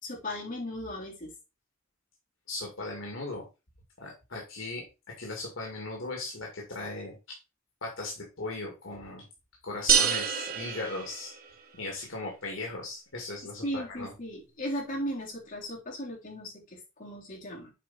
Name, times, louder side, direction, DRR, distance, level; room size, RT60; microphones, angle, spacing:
voice 1, 0.0-1.3 13.6-17.7, equal, 45° left, -4 dB, 3.7 m, -36 dB
voice 2, 2.5-3.4 4.0-7.4 7.8-9.2 9.6-11.4 11.7-14.1, left 2 dB, 75° left, -1 dB, 2.2 m, -38 dB
sound 1, 9.9-11.7, right 7 dB, 45° right, 1.3 m, -27 dB
7.5 x 4.8 x 4.2 m, 0.27 s
head